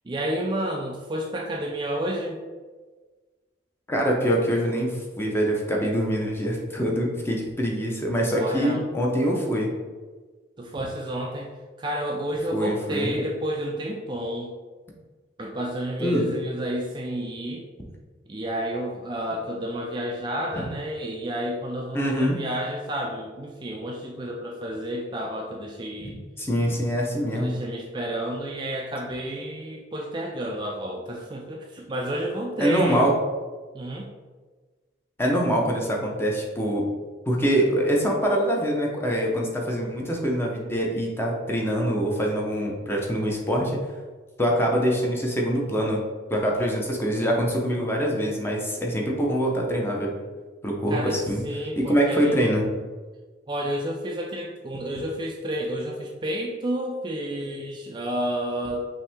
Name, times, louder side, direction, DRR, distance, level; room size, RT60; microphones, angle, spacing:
voice 1, 0.1-2.4 8.3-8.8 10.6-11.5 11.8-14.5 15.4-17.6 18.3-26.2 27.3-33.1 33.7-34.1 50.9-52.3 53.5-58.9, right 1 dB, 25° right, 0 dB, 0.4 m, -30 dB
voice 2, 3.9-9.7 12.5-13.1 16.0-16.3 20.5-20.6 21.9-22.4 26.0-26.1 26.4-27.5 32.6-33.1 35.2-36.9 37.3-43.8 44.4-46.0 46.3-50.2 50.6-51.4 51.8-52.7, equal, 15° left, -1 dB, 0.7 m, -24 dB
5.5 x 2.7 x 3.5 m, 1.4 s
head